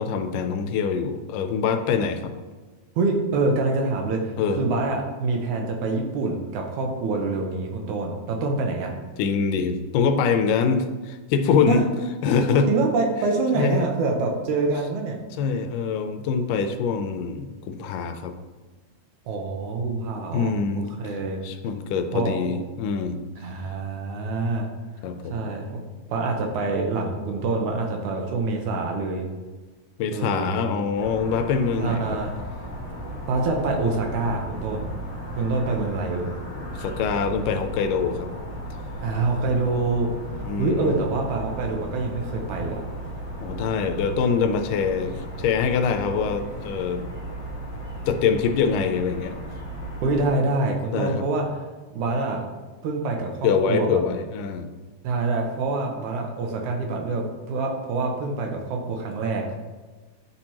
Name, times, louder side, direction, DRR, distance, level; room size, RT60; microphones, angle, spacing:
voice 1, 0.0-2.3 4.4-4.6 9.2-11.8 12.2-12.7 13.5-13.9 15.4-18.4 20.3-21.1 21.4-23.2 25.0-25.5 30.0-32.2 36.6-38.3 40.4-41.0 43.4-47.1 48.1-49.4 50.9-51.3 53.4-54.7, left 6 dB, 85° left, 8 dB, 2.2 m, -24 dB
voice 2, 3.0-8.9 11.7-11.8 12.7-15.2 19.3-20.5 21.0-21.4 22.1-22.3 23.4-24.7 25.3-25.7 26.1-29.3 30.1-30.7 31.8-32.4 33.3-34.9 35.3-36.4 39.0-40.1 40.6-42.8 50.0-51.5 51.9-52.4 52.8-54.0 55.0-59.6, right 3 dB, 75° right, 2 dB, 2.1 m, -26 dB
sound 1, 30.9-50.3, equal, 65° left, 0.5 m, -36 dB
10.0 x 4.4 x 2.9 m, 1.3 s
omnidirectional pair, 3.7 m